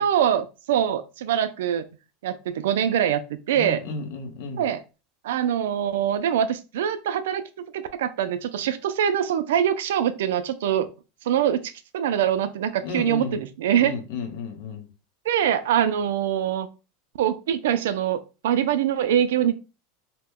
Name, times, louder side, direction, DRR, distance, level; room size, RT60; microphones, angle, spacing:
voice 1, 0.0-1.9 2.2-3.8 4.6-4.8 5.2-7.4 7.7-10.9 11.3-14.0 15.3-16.7 17.2-19.5, right 9 dB, 90° right, 0.4 m, -24 dB
voice 2, 3.5-4.7 12.8-13.4 13.8-14.9, left 3 dB, 55° left, 0.8 m, -33 dB
2.9 x 2.1 x 3.5 m
supercardioid pair, 175°, 0 cm